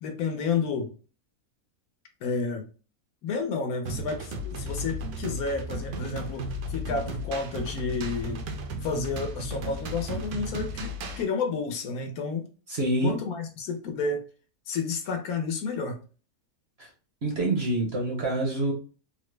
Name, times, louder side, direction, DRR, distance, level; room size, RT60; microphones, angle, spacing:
voice 1, 0.0-0.9 2.2-2.6 3.2-8.4 8.8-12.5 13.0-14.2 14.7-16.0, left 4 dB, 75° left, 5 dB, 1.2 m, -31 dB
sound 1, 3.9-11.2, equal, 75° right, 1.1 m, -35 dB
voice 2, 12.7-13.1 16.8-16.9 17.2-18.7, right 1 dB, 55° right, 0 dB, 0.8 m, -26 dB
3.5 x 2.0 x 3.2 m, 0.36 s
omnidirectional pair, 1.6 m